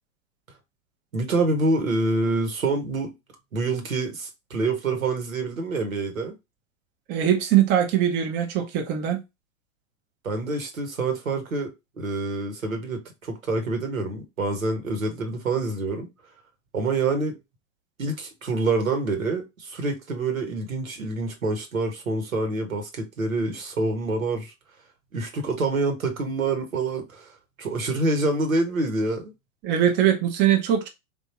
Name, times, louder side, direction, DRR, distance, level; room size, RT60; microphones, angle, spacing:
voice 1, 1.1-3.1 3.5-6.3 10.2-16.1 16.7-17.4 18.0-24.5 25.1-27.3 27.6-29.3, right 3 dB, 80° right, 1.3 m, -26 dB
voice 2, 7.1-9.2 29.6-30.9, right 10 dB, 25° right, 0.7 m, -21 dB
3.6 x 2.6 x 2.8 m
figure-of-eight pair, 100°, 40 cm